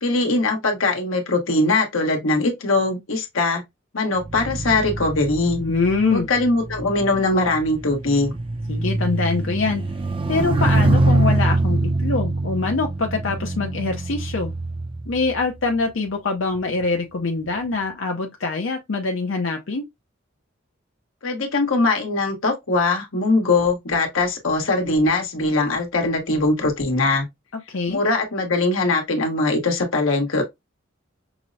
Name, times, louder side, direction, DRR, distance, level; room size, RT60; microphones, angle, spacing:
voice 1, 0.0-3.6 3.9-5.6 6.1-8.3 21.2-27.3 27.9-30.4, left 2 dB, 90° left, 1.2 m, -21 dB
sound 1, 4.2-15.8 16.6-16.8, right 2 dB, 25° right, 0.5 m, -24 dB
voice 2, 5.6-6.3 8.7-9.8 10.3-14.5 15.1-19.9 27.7-28.0, left 3 dB, 70° left, 0.6 m, -24 dB
5.9 x 2.1 x 2.6 m
head